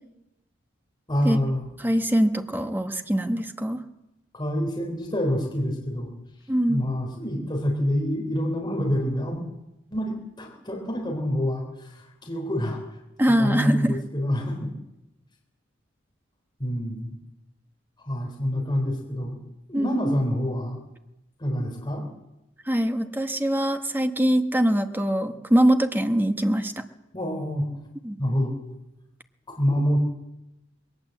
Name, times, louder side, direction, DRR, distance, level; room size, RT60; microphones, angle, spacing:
voice 1, 1.1-1.7 4.3-6.1 6.7-9.4 9.9-12.8 13.3-14.7 16.6-17.2 18.1-19.4 19.7-20.8 21.4-22.0 27.1-27.7 28.2-28.5 29.5-30.0, equal, 25° left, 0 dB, 3.8 m, -27 dB
voice 2, 1.8-3.8 6.5-6.8 13.2-14.0 19.7-20.0 22.7-26.7 28.0-28.2, equal, 10° right, 6 dB, 1.3 m, -23 dB
21.5 x 18.5 x 7.7 m, 0.94 s
head